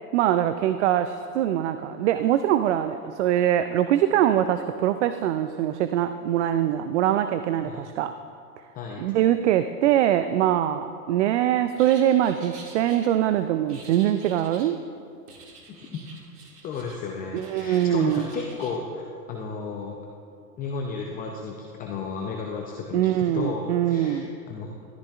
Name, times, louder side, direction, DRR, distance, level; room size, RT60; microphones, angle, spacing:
voice 1, 0.1-8.1 9.0-14.8 17.3-18.3 22.9-24.3, right 11 dB, 50° right, 11 dB, 0.4 m, -23 dB
sound 1, 11.8-13.1 13.7-14.8 15.3-17.0 17.3-18.8, right 3 dB, 75° right, 2.2 m, -47 dB
voice 2, 15.7-16.0 16.6-20.0 20.6-24.2 24.5-24.7, left 4 dB, 20° left, 0 dB, 0.6 m, -33 dB
13.5 x 12.5 x 2.5 m, 2.4 s
hypercardioid pair, 120°, 47 cm